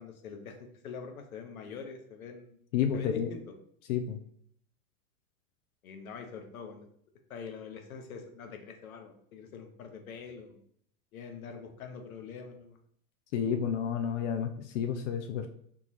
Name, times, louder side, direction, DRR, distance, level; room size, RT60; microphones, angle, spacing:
voice 1, 0.0-2.6 2.9-3.5 5.8-6.9 7.3-10.6 11.1-12.8, left 5 dB, 75° left, 4 dB, 1.0 m, -44 dB
voice 2, 2.7-3.3 3.9-4.2 13.3-15.5, left 8 dB, 60° left, 6 dB, 0.6 m, -30 dB
3.9 x 3.5 x 3.1 m, 0.65 s
hypercardioid pair, 90°, 43 cm